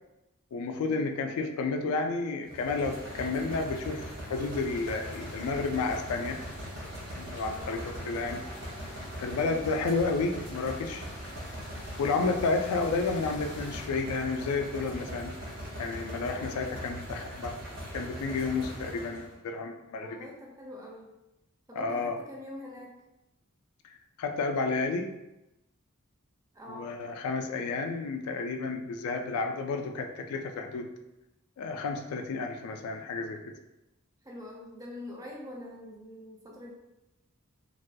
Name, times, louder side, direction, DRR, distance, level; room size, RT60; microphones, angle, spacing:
voice 1, 0.5-6.4 7.2-8.4 9.2-11.1 12.0-15.3 15.8-17.6 17.9-20.2 21.7-22.2 24.2-25.1 26.7-30.9 31.6-33.5, left 4 dB, 85° left, 9 dB, 0.3 m, -31 dB
sound 1, 2.5-19.4, equal, 80° right, 0.8 m, -41 dB
sound 2, 4.3-13.9, left 1 dB, 45° left, 0.6 m, -49 dB
voice 2, 7.4-8.3 16.0-16.3 20.0-21.1 21.7-23.0 26.5-26.9 34.2-36.7, left 1 dB, 15° right, -2 dB, 0.4 m, -45 dB
2.3 x 2.1 x 2.5 m, 0.95 s
head